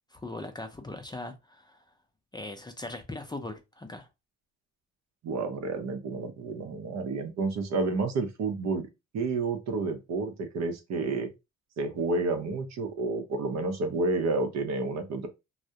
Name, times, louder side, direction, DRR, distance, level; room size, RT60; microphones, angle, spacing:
voice 1, 0.1-1.8 2.3-4.1, left 2 dB, 15° left, 0.4 m, -40 dB
voice 2, 5.2-8.9 9.1-11.3 11.8-15.3, right 3 dB, 60° right, 0.7 m, -30 dB
2.3 x 2.0 x 2.7 m
cardioid pair, 90°, 30 cm